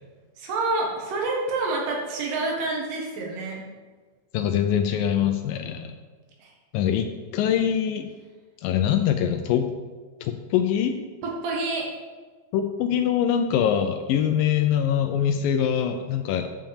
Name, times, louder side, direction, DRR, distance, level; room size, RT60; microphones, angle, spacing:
voice 1, 0.4-3.7 6.4-6.5 11.2-11.9, right 3 dB, 85° right, -1 dB, 3.6 m, -28 dB
voice 2, 4.3-5.9 6.7-8.1 8.6-9.7 10.2-11.0 12.5-16.5, left 9 dB, 85° left, 7 dB, 2.0 m, -23 dB
8.5 x 5.6 x 7.1 m, 1.4 s
omnidirectional pair, 4.6 m